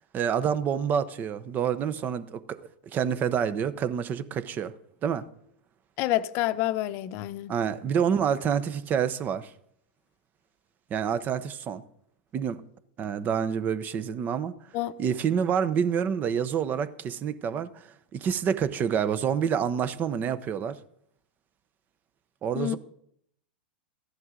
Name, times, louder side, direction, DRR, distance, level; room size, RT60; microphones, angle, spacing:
voice 1, 0.1-2.6 2.8-4.7 5.0-5.2 7.5-9.5 10.9-11.8 12.3-12.6 13.0-14.5 15.0-20.8 22.4-22.8, right 7 dB, 35° right, 0.8 m, -27 dB
voice 2, 6.0-7.5 14.7-14.9 22.5-22.8, left 15 dB, 50° left, 0.7 m, -28 dB
14.5 x 10.5 x 3.9 m
hypercardioid pair, 100°, 5 cm